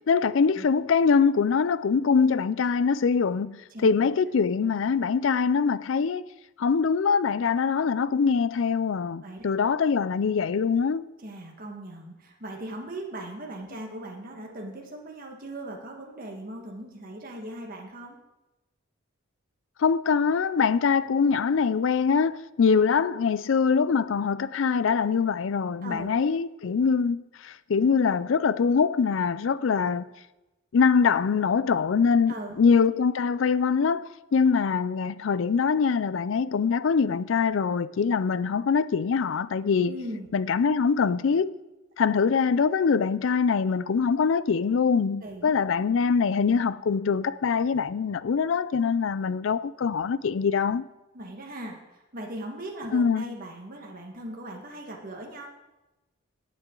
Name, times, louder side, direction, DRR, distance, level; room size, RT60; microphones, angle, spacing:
voice 1, 0.1-6.2 6.6-11.1 19.8-30.1 30.7-34.0 34.3-39.9 40.3-41.6 42.0-50.9 52.9-53.2, left 5 dB, 65° left, 0.4 m, -23 dB
voice 2, 11.2-18.2 25.8-26.2 32.3-32.6 39.8-40.3 45.2-45.7 51.1-55.5, right 1 dB, 45° right, 1.6 m, -39 dB
17.0 x 7.5 x 3.8 m
head